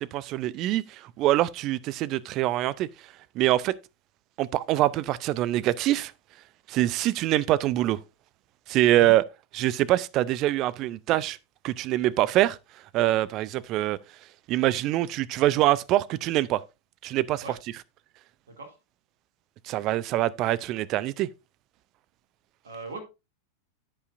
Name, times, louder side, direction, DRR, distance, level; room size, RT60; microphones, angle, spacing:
voice 1, 0.0-2.9 3.3-3.7 4.4-6.1 6.7-8.0 8.7-9.2 9.5-11.4 11.6-12.6 12.9-14.0 14.5-16.6 17.0-17.4 19.6-21.3, right 15 dB, 40° right, 0.5 m, -24 dB
voice 2, 22.6-23.0, right 2 dB, 70° right, 2.3 m, -39 dB
14.5 x 5.4 x 2.5 m
figure-of-eight pair, 90°, 0 cm